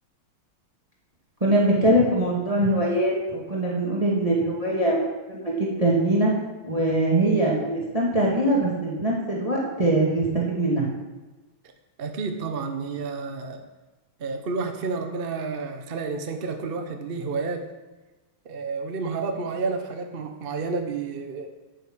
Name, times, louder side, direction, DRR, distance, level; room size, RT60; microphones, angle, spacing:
voice 1, 1.4-6.3 6.6-10.8, right 1 dB, 15° right, -4 dB, 2.0 m, -22 dB
voice 2, 12.0-13.6 14.2-17.7 18.4-21.5, right 4 dB, 40° right, 5 dB, 0.8 m, -30 dB
9.3 x 9.2 x 6.2 m, 1.1 s
omnidirectional pair, 2.4 m